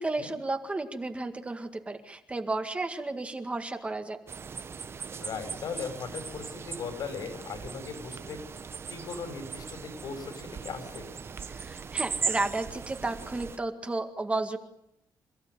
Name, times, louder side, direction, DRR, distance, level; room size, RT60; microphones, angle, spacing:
voice 1, 0.0-4.2 11.5-14.6, right 2 dB, 15° right, 6 dB, 1.9 m, -33 dB
sound 1, 4.3-13.6, right 5 dB, 35° right, 1.0 m, -38 dB
voice 2, 5.2-8.4 8.9-11.1, left 5 dB, 65° left, 8 dB, 5.9 m, -38 dB
28.5 x 16.0 x 9.7 m, 0.80 s
wide cardioid pair, 160°, 7 cm